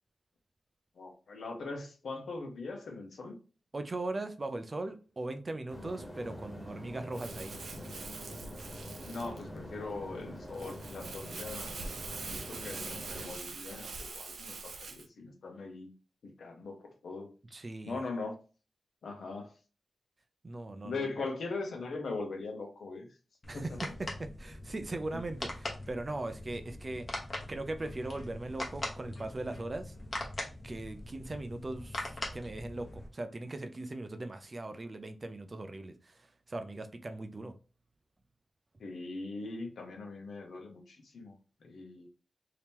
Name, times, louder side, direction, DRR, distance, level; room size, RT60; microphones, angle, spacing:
voice 1, 1.0-3.4 9.0-11.8 12.3-15.9 16.2-17.3 17.8-18.4 19.0-19.5 20.8-23.1 23.5-23.8 38.8-41.4 41.6-42.1, left 3 dB, 85° left, 0.9 m, -40 dB
voice 2, 3.7-7.6 17.5-18.0 20.4-21.1 23.5-23.7 24.0-27.1 27.5-29.9 30.6-37.5, right 2 dB, 30° right, 0.4 m, -39 dB
sound 1, 5.7-13.3, equal, 10° left, 1.2 m, -45 dB
Crumpling crinkling, 7.1-15.1, right 4 dB, 80° right, 0.5 m, -44 dB
sound 2, 23.4-33.1, left 1 dB, 40° left, 0.9 m, -42 dB
2.9 x 2.8 x 3.5 m
wide cardioid pair, 145°, 0 cm